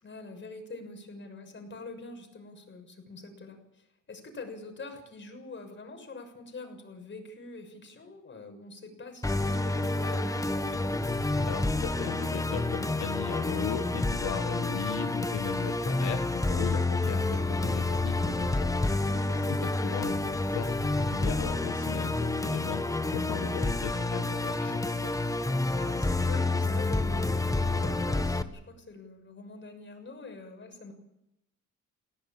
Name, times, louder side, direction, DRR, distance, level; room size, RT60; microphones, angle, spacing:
voice 1, 0.0-11.0 19.2-19.6 25.7-30.9, left 3 dB, 40° left, 5 dB, 6.5 m, -45 dB
Musical instrument, 9.2-28.4, left 2 dB, 10° left, 1.3 m, -29 dB
voice 2, 11.4-25.2, left 10 dB, 80° left, 6 dB, 1.6 m, -38 dB
20.5 x 17.5 x 8.8 m, 0.85 s
cardioid pair, 90°, 30 cm